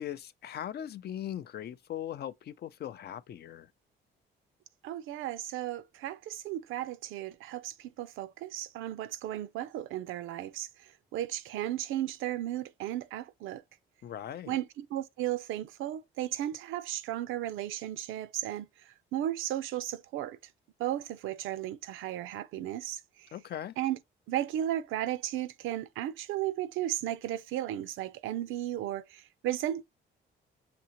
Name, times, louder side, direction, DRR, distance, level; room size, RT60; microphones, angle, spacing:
voice 1, 0.0-3.7 14.0-14.6 23.3-23.7, left 10 dB, 55° left, 0.4 m, -39 dB
voice 2, 4.8-13.6 14.5-20.4 20.8-23.3 23.8-24.0 24.3-29.8, right 12 dB, 85° right, 0.5 m, -35 dB
5.9 x 2.9 x 2.9 m
cardioid pair, 90°, 20 cm